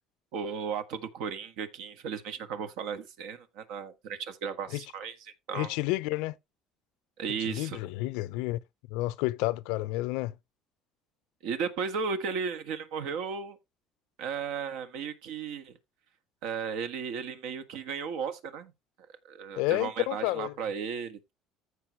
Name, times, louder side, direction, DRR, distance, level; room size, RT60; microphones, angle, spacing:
voice 1, 0.3-5.2 5.5-5.7 7.2-7.8 11.4-13.6 14.2-15.7 16.4-18.7 19.3-21.3, right 6 dB, 75° right, 1.6 m, -35 dB
voice 2, 5.5-6.4 7.4-8.6 8.9-10.3 19.6-20.5, left 19 dB, 85° left, 0.6 m, -30 dB
14.5 x 4.9 x 3.1 m
cardioid pair, 130°, 0 cm